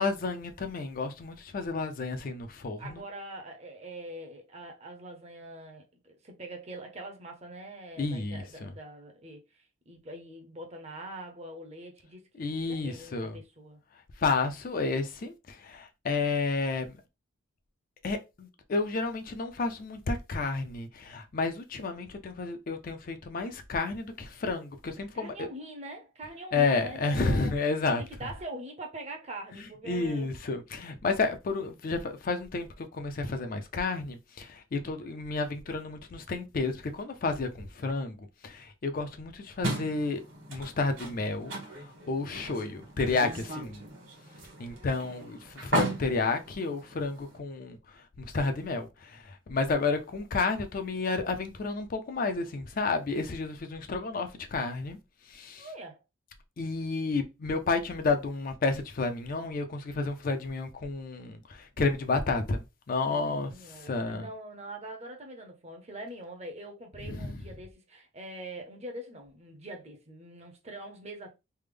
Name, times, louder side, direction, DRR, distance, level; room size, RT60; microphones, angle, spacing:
voice 1, 0.0-3.0 8.0-8.7 12.4-13.4 14.2-17.0 18.0-25.5 26.5-28.0 29.9-40.2 40.5-43.8 44.6-55.0 55.3-55.7 56.6-62.6 62.9-64.3 67.1-67.3, left 3 dB, 40° left, 0.4 m, -31 dB
voice 2, 2.8-13.8 25.1-27.5 28.0-30.3 44.7-45.3 55.6-56.0 63.1-71.3, right 1 dB, 30° right, 0.6 m, -43 dB
sound 1, 39.6-47.4, right 2 dB, 60° right, 1.4 m, -37 dB
3.3 x 2.0 x 3.3 m
head